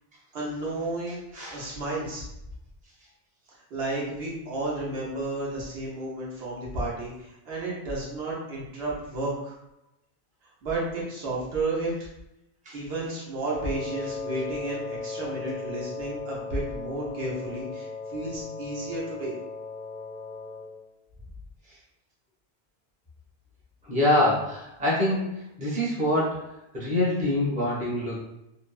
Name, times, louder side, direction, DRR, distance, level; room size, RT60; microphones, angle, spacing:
voice 1, 0.3-1.2 1.5-2.2 3.7-9.6 10.6-11.9 12.7-19.4, right 2 dB, 75° right, -6 dB, 1.0 m, -32 dB
voice 2, 1.3-1.7 12.7-12.8 23.9-25.2 25.6-26.4 26.7-28.2, left 1 dB, 10° right, -7 dB, 0.6 m, -25 dB
Wind instrument woodwind instrument, 13.5-20.8, left 4 dB, 55° left, 0.5 m, -37 dB
2.8 x 2.0 x 2.3 m, 0.87 s
omnidirectional pair, 1.1 m